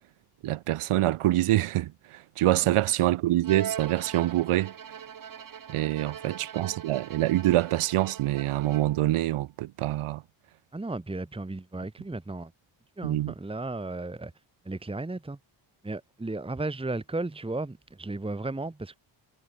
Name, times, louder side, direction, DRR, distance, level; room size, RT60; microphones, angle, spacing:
voice 1, 0.4-4.7 5.7-10.2 13.0-13.3, right 15 dB, 90° right, 0.8 m, -25 dB
Bowed string instrument, 3.4-9.1, right 8 dB, 40° right, 1.2 m, -40 dB
voice 2, 10.7-12.5 13.0-14.3 14.6-15.4 15.8-18.9, right 2 dB, 10° right, 1.6 m, -34 dB
wide cardioid pair, 140°, 49 cm